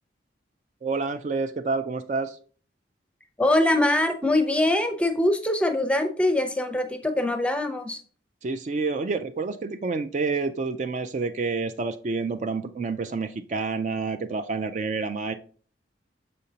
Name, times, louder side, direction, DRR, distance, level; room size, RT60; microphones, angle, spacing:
voice 1, 0.8-2.4 8.4-15.3, right 4 dB, 40° right, 8 dB, 0.3 m, -28 dB
voice 2, 3.4-8.0, left 1 dB, 5° left, 6 dB, 0.6 m, -23 dB
6.6 x 5.2 x 2.8 m, 0.43 s
head